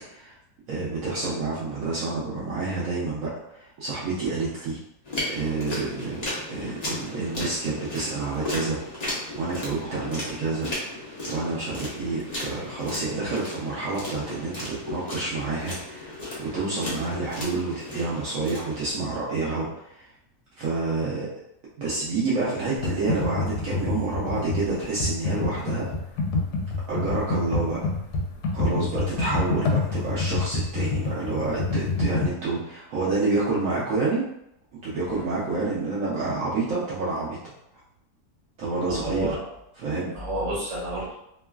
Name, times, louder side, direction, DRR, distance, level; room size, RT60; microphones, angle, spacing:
voice 1, 0.7-4.8 5.3-6.2 6.5-8.8 9.3-10.7 11.2-16.1 16.4-20.1 20.6-21.3 21.8-25.9 26.9-27.8 28.5-34.3 34.8-37.4 38.6-39.4 39.7-40.2, right 3 dB, 65° right, -7 dB, 0.9 m, -28 dB
sound 1, 5.1-18.9, left 1 dB, 40° left, 0.6 m, -35 dB
Computer keyboard, 22.8-32.3, left 3 dB, 80° left, 1.1 m, -27 dB
voice 2, 38.9-39.4 40.1-41.1, right 1 dB, 30° right, -7 dB, 0.8 m, -30 dB
3.0 x 2.3 x 2.3 m, 0.79 s
omnidirectional pair, 1.7 m